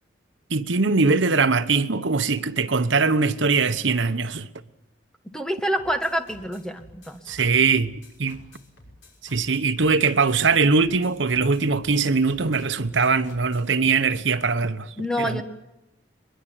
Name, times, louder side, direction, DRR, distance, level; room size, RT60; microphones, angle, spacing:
voice 1, 0.5-4.5 7.3-8.4 9.3-15.4, right 4 dB, 75° right, 1.1 m, -21 dB
voice 2, 5.3-7.2 15.0-15.4, equal, 5° left, 1.6 m, -27 dB
sound 1, 5.8-13.7, left 1 dB, 70° left, 5.7 m, -50 dB
22.0 x 22.0 x 9.1 m
head